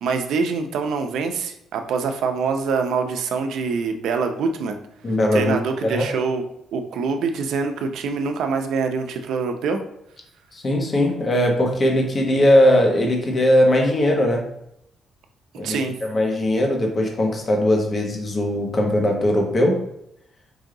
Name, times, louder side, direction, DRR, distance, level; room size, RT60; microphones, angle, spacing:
voice 1, 0.0-4.8 5.3-6.4 6.7-9.8 15.6-16.0, right 5 dB, 75° right, 6 dB, 0.6 m, -25 dB
voice 2, 5.0-5.5 5.8-6.1 10.5-14.4 15.6-15.7 16.0-19.8, left 1 dB, 30° left, 1 dB, 1.0 m, -19 dB
5.0 x 2.7 x 3.8 m, 0.77 s
cardioid pair, 120°, 0 cm